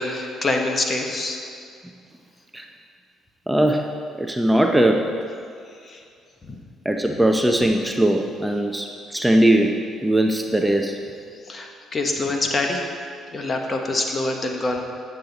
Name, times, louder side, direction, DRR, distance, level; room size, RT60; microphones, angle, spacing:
voice 1, 0.0-1.4 5.8-6.0 6.4-6.6 11.4-12.9 13.3-14.8, left 2 dB, 35° left, 3 dB, 1.2 m, -25 dB
voice 2, 3.5-3.8 4.2-5.0 6.8-9.8 10.0-11.0, right 1 dB, 5° right, 3 dB, 0.7 m, -19 dB
8.4 x 7.9 x 4.0 m, 2.3 s
supercardioid pair, 70°, 0 cm